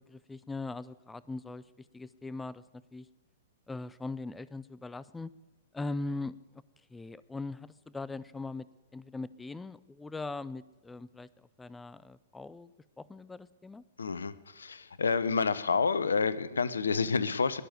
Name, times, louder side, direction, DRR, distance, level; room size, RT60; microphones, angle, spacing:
voice 1, 0.0-2.6 2.9-3.1 3.7-5.3 5.7-6.6 6.9-8.7 8.9-12.7 13.0-13.8, left 3 dB, 10° left, 18 dB, 0.4 m, -40 dB
voice 2, 14.0-17.6, left 5 dB, 80° left, 16 dB, 0.8 m, -29 dB
20.0 x 6.9 x 9.5 m, 1.1 s
figure-of-eight pair, 110°, 0 cm